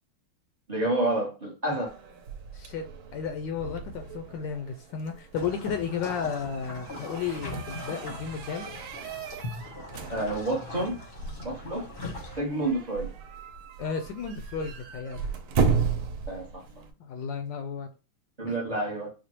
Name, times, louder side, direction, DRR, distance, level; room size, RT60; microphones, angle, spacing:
voice 1, 0.7-1.9 10.1-11.0 11.4-11.9 12.4-13.1 16.3-16.9 18.4-19.1, right 2 dB, 40° right, 0.5 m, -29 dB
sound 1, 1.9-16.9, right 5 dB, 85° right, 1.5 m, -35 dB
voice 2, 2.5-2.9 3.1-8.7 13.8-15.3 17.0-17.9, left 6 dB, 75° left, 1.1 m, -33 dB
sound 2, 5.3-12.4, left 2 dB, 45° left, 0.7 m, -40 dB
5.0 x 2.1 x 2.8 m
omnidirectional pair, 2.4 m